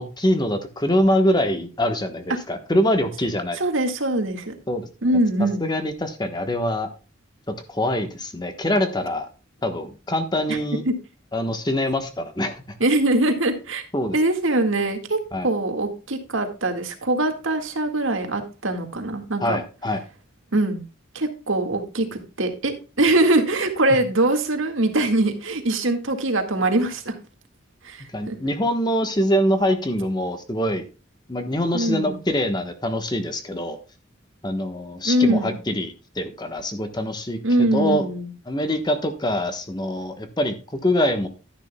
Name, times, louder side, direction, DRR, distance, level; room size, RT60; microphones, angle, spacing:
voice 1, 0.0-3.6 4.7-4.9 5.6-6.9 7.7-9.3 9.6-10.8 11.3-12.6 13.9-14.1 15.3-15.5 19.4-20.0 28.1-30.8 31.3-33.8 34.4-38.0 38.5-41.3, left 1 dB, 20° left, 7 dB, 1.2 m, -24 dB
voice 2, 3.6-4.5 5.0-5.6 10.5-10.6 10.9-11.0 12.8-13.8 14.1-19.6 20.5-20.8 21.1-27.2 27.8-28.4 31.7-32.2 35.0-35.6 37.4-38.3, right 2 dB, 75° right, 6 dB, 1.9 m, -22 dB
12.0 x 11.0 x 2.3 m, 0.33 s
head